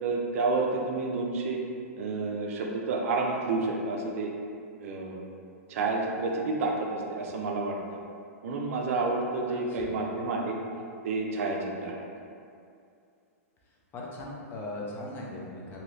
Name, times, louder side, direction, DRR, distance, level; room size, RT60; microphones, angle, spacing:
voice 1, 0.0-1.6 2.0-4.3 4.8-5.2 5.7-7.8 8.4-10.6 11.0-12.0, right 3 dB, 65° right, 1 dB, 0.5 m, -29 dB
voice 2, 9.4-10.0 13.6-15.8, left 2 dB, 25° left, -3 dB, 0.5 m, -40 dB
3.0 x 2.7 x 2.6 m, 2.4 s
hypercardioid pair, 135°, 8 cm